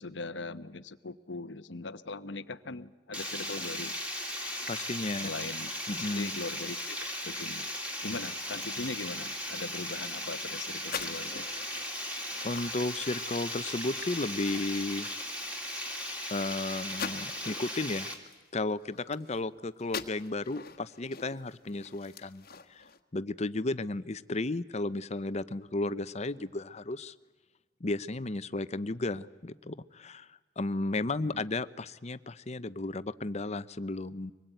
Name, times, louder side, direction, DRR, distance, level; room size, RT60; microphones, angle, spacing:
voice 1, 0.0-3.9 5.2-5.7 6.0-7.7 8.0-11.5 31.3-31.4, left 3 dB, 85° left, 13 dB, 1.0 m, -40 dB
Water, 3.1-18.1, left 1 dB, 5° right, 3.0 m, -37 dB
voice 2, 4.7-5.3 5.9-6.3 12.4-15.1 16.3-18.1 18.5-22.4 22.7-22.8 23.1-27.1 27.8-30.3 30.6-34.3, left 2 dB, 40° left, 14 dB, 0.8 m, -34 dB
sound 1, 10.8-19.5 19.8-23.0, left 5 dB, 55° left, 1.4 m, -45 dB
25.0 x 20.5 x 9.2 m, 1.3 s
head